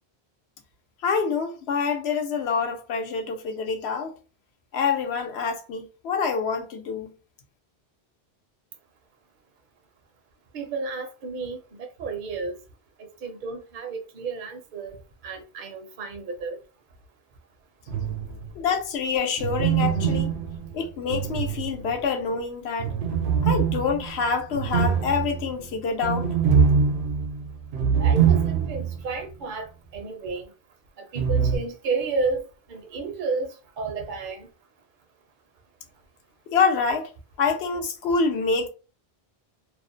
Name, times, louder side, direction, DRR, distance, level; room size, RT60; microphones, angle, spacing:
voice 1, 1.0-4.1 4.7-7.1 18.6-20.3 20.7-22.9 23.4-26.3 36.5-37.1 37.4-38.7, left 5 dB, 85° left, 0.9 m, -26 dB
voice 2, 10.5-12.6 13.0-16.6 27.8-30.5 31.0-34.5, right 4 dB, 60° right, 0.6 m, -32 dB
sound 1, 17.9-18.6 19.4-22.1 22.8-29.0 29.3-29.4 31.2-31.6, right 6 dB, 90° right, 0.9 m, -24 dB
2.5 x 2.0 x 2.5 m
omnidirectional pair, 1.1 m